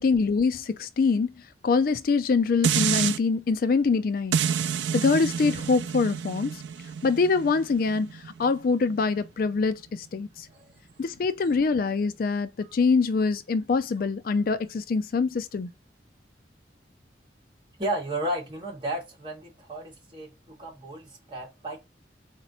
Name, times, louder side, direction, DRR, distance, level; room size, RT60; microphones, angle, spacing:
voice 1, 0.0-1.3 1.6-4.4 4.9-6.6 7.0-10.5 11.0-15.7, left 4 dB, 55° left, 0.4 m, -24 dB
sound 1, 2.6-3.2 4.3-9.5 9.9-10.0, right 8 dB, 80° right, 0.4 m, -29 dB
voice 2, 17.8-21.8, right 1 dB, 30° right, 2.0 m, -33 dB
4.0 x 2.9 x 4.2 m
head